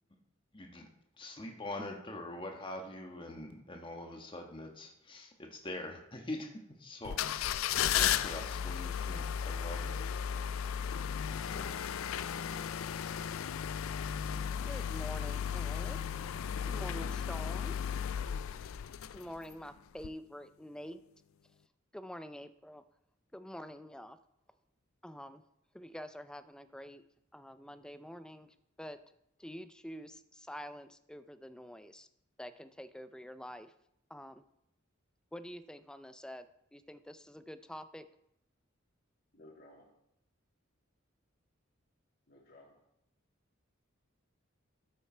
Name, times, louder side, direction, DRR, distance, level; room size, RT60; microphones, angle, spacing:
voice 1, 0.5-0.9 1.2-6.5 6.8-7.5 7.7-10.0, left 1 dB, 25° left, 3 dB, 1.3 m, -43 dB
sound 1, 7.1-19.5 20.0-20.1, left 9 dB, 85° left, 0.4 m, -35 dB
voice 2, 14.6-16.0 16.7-17.9 19.1-21.0 21.9-22.8 23.3-24.2 25.0-25.4 25.7-27.0 27.3-29.0 29.4-32.1 32.4-33.7 34.1-34.4 35.3-38.1, equal, 5° left, 11 dB, 0.4 m, -47 dB
voice 3, 39.3-39.9 42.3-42.8, left 1 dB, 50° left, -5 dB, 2.4 m, -57 dB
12.5 x 6.6 x 4.4 m, 0.79 s
head